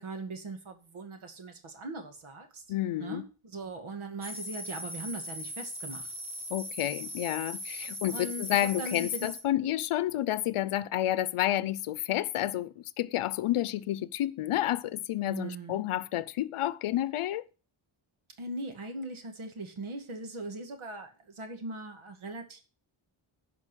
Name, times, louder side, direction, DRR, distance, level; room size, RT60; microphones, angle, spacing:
voice 1, 0.0-2.6 3.0-6.1 8.1-9.3 15.2-15.9 18.4-22.6, right 2 dB, 75° right, 2.2 m, -40 dB
voice 2, 2.7-3.2 6.5-17.4, left 13 dB, 85° left, 0.7 m, -30 dB
sound 1, 4.2-9.4, equal, 10° right, 1.8 m, -39 dB
11.0 x 5.3 x 6.2 m
cardioid pair, 95°, 50 cm